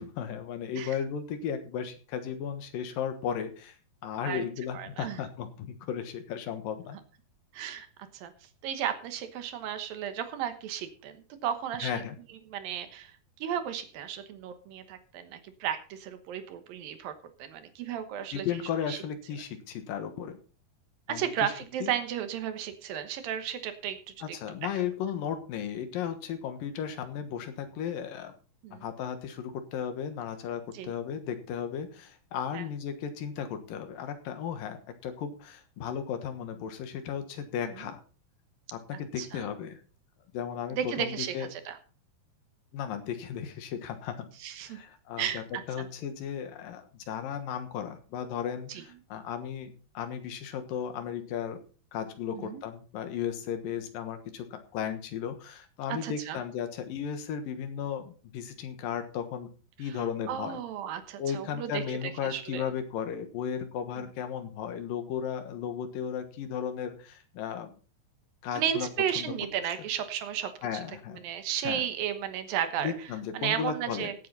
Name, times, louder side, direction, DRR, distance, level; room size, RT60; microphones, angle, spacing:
voice 1, 0.0-3.8 4.0-7.0 11.8-12.2 18.3-20.4 21.1-21.5 21.8-21.9 24.2-28.3 28.7-34.8 35.0-38.0 38.7-39.8 40.3-41.5 42.7-44.3 44.7-51.6 51.9-59.5 59.8-60.6 61.2-67.7 68.4-68.9 69.2-69.3 70.6-71.2 71.6-71.8 72.8-74.1, left 8 dB, 65° left, 8 dB, 2.8 m, -35 dB
voice 2, 4.7-5.2 7.5-7.9 8.1-8.3 8.6-12.0 12.5-13.1 13.4-17.1 17.4-18.6 18.9-19.0 21.1-24.4 28.6-28.9 30.7-30.9 32.5-32.7 37.7-37.9 39.2-39.5 40.7-41.8 44.4-44.8 45.2-45.9 48.7-48.8 52.3-52.6 55.9-56.4 59.9-60.0 60.3-61.8 62.2-62.6 68.5-70.5 71.2-73.1 73.3-74.1, right 9 dB, 70° right, 9 dB, 2.6 m, -34 dB
16.5 x 8.5 x 4.1 m, 0.37 s
omnidirectional pair, 4.8 m